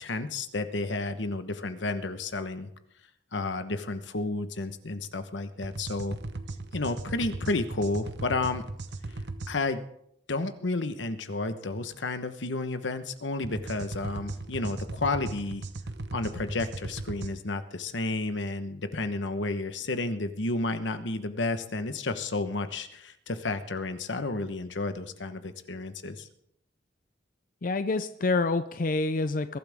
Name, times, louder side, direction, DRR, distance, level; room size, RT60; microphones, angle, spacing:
voice 1, 0.0-2.7 3.3-6.2 6.7-8.6 9.5-9.8 10.3-15.6 16.1-26.3, left 2 dB, 90° left, 10 dB, 1.2 m, -31 dB
sound 1, 5.6-9.5 13.4-17.3, right 2 dB, 65° right, 0.9 m, -38 dB
voice 2, 27.6-29.6, left 3 dB, 50° left, 11 dB, 0.5 m, -27 dB
21.5 x 12.0 x 3.6 m, 0.74 s
head